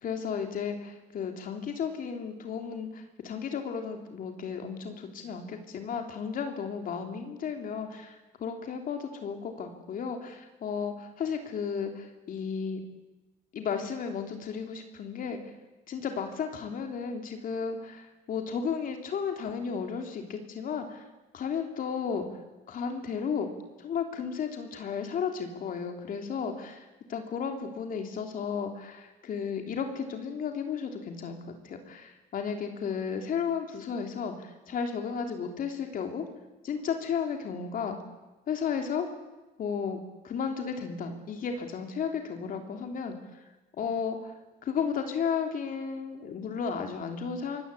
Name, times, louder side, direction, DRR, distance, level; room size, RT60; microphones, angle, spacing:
voice 1, 0.0-12.8 13.5-15.5 15.9-21.1 21.3-22.4 22.7-23.5 23.8-26.8 27.1-31.4 31.6-36.2 36.6-38.0 38.5-39.1 39.6-40.0 40.2-43.4 43.8-44.3 44.6-47.6, left 6 dB, 55° left, 4 dB, 3.2 m, -33 dB
24.5 x 19.0 x 8.5 m, 1.1 s
cardioid pair, 110°, 17 cm